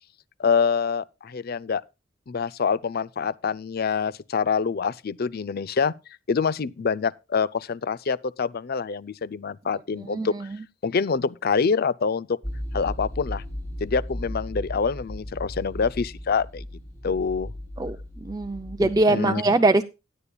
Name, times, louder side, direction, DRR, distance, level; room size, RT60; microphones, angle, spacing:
voice 1, 0.4-1.8 2.3-5.9 6.3-10.5 10.8-12.4 12.7-13.4 13.8-16.7 17.0-17.5 18.8-19.4, left 5 dB, 50° left, 0.5 m, -26 dB
sound 1, 12.4-19.0, equal, 15° left, 3.2 m, -36 dB
voice 2, 18.2-19.8, right 2 dB, 20° right, 0.5 m, -22 dB
16.5 x 10.0 x 2.3 m
head